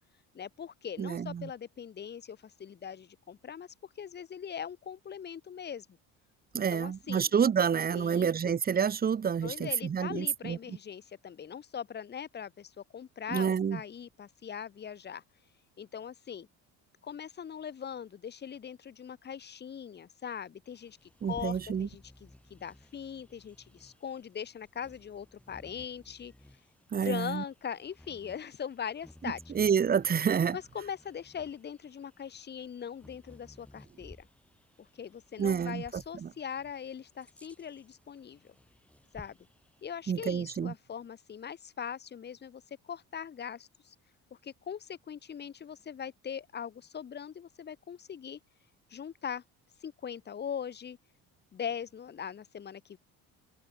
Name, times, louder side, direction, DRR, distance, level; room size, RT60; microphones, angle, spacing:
voice 1, 0.3-3.7 4.0-5.9 6.7-7.3 7.9-8.5 9.4-15.2 15.8-16.5 17.0-26.3 27.0-29.4 30.5-34.3 34.8-38.5 39.1-39.4 39.8-43.9 44.4-48.4 48.9-49.4 49.8-51.0 51.5-53.0, left 8 dB, 30° left, 3.0 m, -41 dB
voice 2, 1.0-1.5 6.5-10.8 13.3-13.8 21.2-21.9 26.9-27.4 29.5-30.6 35.4-36.3 40.1-40.7, right 7 dB, 25° right, 2.1 m, -28 dB
Bird vocalization bird call bird song, 20.6-40.1, left 1 dB, 5° left, 5.1 m, -57 dB
open air
cardioid pair, 150°, 33 cm